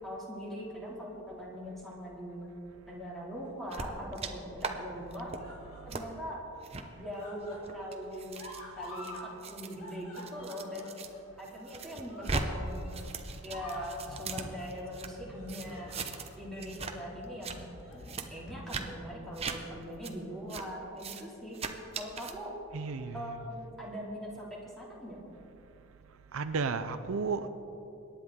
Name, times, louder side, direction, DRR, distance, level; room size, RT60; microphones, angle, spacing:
voice 1, 0.0-2.5 2.9-5.3 5.9-6.4 6.9-9.1 9.5-10.9 11.4-12.9 13.4-16.0 16.4-17.6 17.9-21.6 22.0-22.5 23.1-25.2, equal, ahead, -5 dB, 2.5 m, -41 dB
sound 1, 3.4-4.0 4.9-6.2 6.5-9.3 9.5-13.0 13.3-14.0 14.4-14.7 15.3-16.3 16.7-16.9 17.6-18.1 18.4-18.6 19.7-20.4 21.3-21.4, left 1 dB, 85° left, 2.7 m, -50 dB
sound 2, 3.7-4.3 4.6-4.7 5.1-5.4 5.9-6.0 6.6-6.8 7.5-11.1 11.4-12.4 12.7-15.1 15.5-16.3 16.6-16.9 17.2-17.6 18.0-18.2 18.7-18.8 19.3-19.6 20.0-20.1 20.5-20.6 21.0-21.2 21.5-22.3, right 4 dB, 30° right, 0.7 m, -38 dB
sound 3, 12.9-18.7, left 2 dB, 50° left, 0.7 m, -51 dB
voice 2, 22.7-23.4 26.3-27.5, right 4 dB, 70° right, 10 dB, 0.5 m, -33 dB
23.0 x 10.0 x 3.7 m, 2.9 s
head